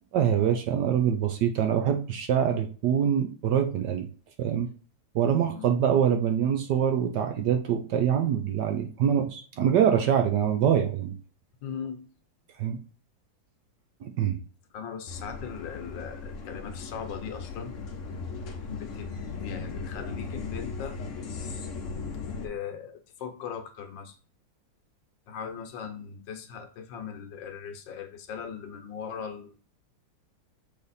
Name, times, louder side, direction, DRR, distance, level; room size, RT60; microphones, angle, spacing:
voice 1, 0.1-4.0 4.4-4.7 5.1-11.1 12.6-12.8 14.0-14.4, right 9 dB, 65° right, 5 dB, 1.2 m, -24 dB
voice 2, 11.6-12.0 14.7-17.8 18.7-21.0 22.4-24.1 25.3-29.6, left 7 dB, 70° left, 6 dB, 1.5 m, -39 dB
sound 1, 15.1-22.5, left 4 dB, 50° left, 1.0 m, -37 dB
6.8 x 3.4 x 4.1 m, 0.39 s
omnidirectional pair, 2.2 m